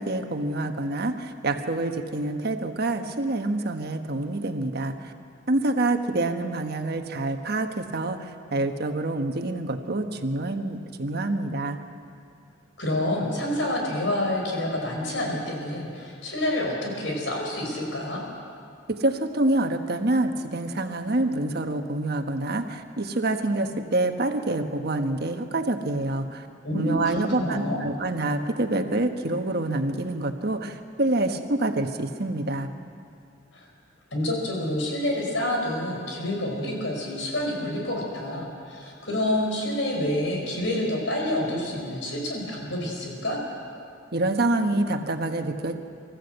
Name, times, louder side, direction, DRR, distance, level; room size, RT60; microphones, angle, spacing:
voice 1, 0.0-5.1 5.5-11.8 18.9-26.5 26.7-32.7 44.1-45.7, right 2 dB, 55° right, 6 dB, 1.3 m, -27 dB
voice 2, 12.8-18.2 26.6-27.8 33.5-33.7 34.1-43.4, left 1 dB, 75° left, 0 dB, 5.3 m, -28 dB
25.0 x 14.5 x 8.1 m, 2.4 s
head